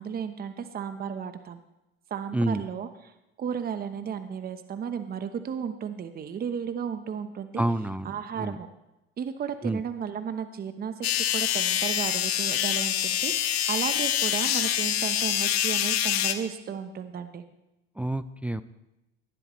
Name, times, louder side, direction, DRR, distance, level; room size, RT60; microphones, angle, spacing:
voice 1, 0.0-1.6 2.1-3.1 3.4-7.6 8.0-8.7 9.2-11.1 11.3-17.4, right 7 dB, 30° right, 10 dB, 1.0 m, -34 dB
voice 2, 2.3-2.6 7.6-8.6 9.6-9.8 18.0-18.6, right 1 dB, 5° right, 13 dB, 0.4 m, -29 dB
sound 1, 11.0-16.3, left 12 dB, 75° left, 1.0 m, -26 dB
18.0 x 11.5 x 3.2 m, 0.92 s
hypercardioid pair, 80°, 31 cm